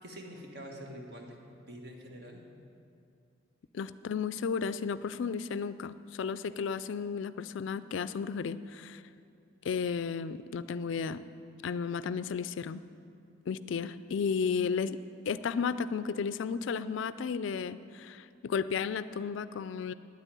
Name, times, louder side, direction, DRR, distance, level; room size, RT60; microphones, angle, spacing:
voice 1, 0.0-2.4, equal, 55° right, 2 dB, 1.5 m, -46 dB
voice 2, 3.7-9.0 9.6-11.2 11.6-12.8 13.5-15.0 15.3-19.9, left 6 dB, 70° left, 15 dB, 0.3 m, -33 dB
9.6 x 8.2 x 9.1 m, 2.5 s
head